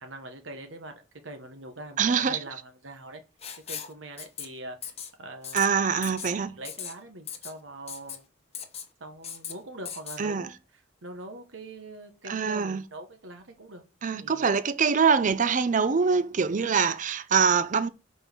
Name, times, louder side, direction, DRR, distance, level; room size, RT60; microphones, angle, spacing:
voice 1, 0.0-3.2 3.7-4.8 5.2-5.8 6.6-8.2 9.0-13.8 14.2-14.5, right 2 dB, 80° right, 1.1 m, -43 dB
voice 2, 2.0-2.4 5.5-6.6 10.2-10.5 12.3-12.8 14.0-17.9, right 6 dB, 40° right, 0.5 m, -24 dB
Writing, 3.4-3.9 4.2-4.5 4.8-5.1 5.4-5.7 6.0-6.3 6.6-6.9 7.3-7.5 7.9-8.2 8.5-8.9 9.2-9.5 9.9-10.2, left 8 dB, 35° left, 1.0 m, -38 dB
5.3 x 4.4 x 5.9 m
head